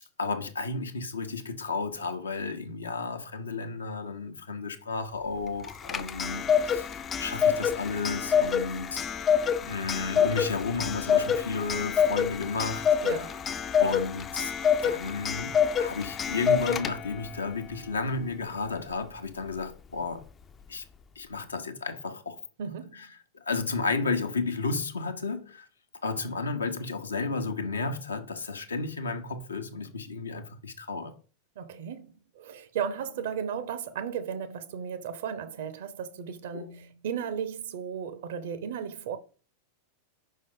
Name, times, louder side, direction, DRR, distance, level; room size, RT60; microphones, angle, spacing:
voice 1, 0.2-6.9 7.2-9.1 9.6-12.9 13.8-14.5 14.8-15.5 15.8-20.2 20.7-20.8 21.2-22.4 23.0-23.1 23.4-25.7 26.0-31.1 36.5-36.7, left 4 dB, 75° left, 0.8 m, -32 dB
Clock, 5.6-17.3, left 7 dB, 25° left, 0.5 m, -27 dB
voice 2, 13.0-13.4 22.6-23.1 31.6-39.2, right 7 dB, 55° right, 0.7 m, -35 dB
5.4 x 5.2 x 3.7 m
figure-of-eight pair, 90°, 0 cm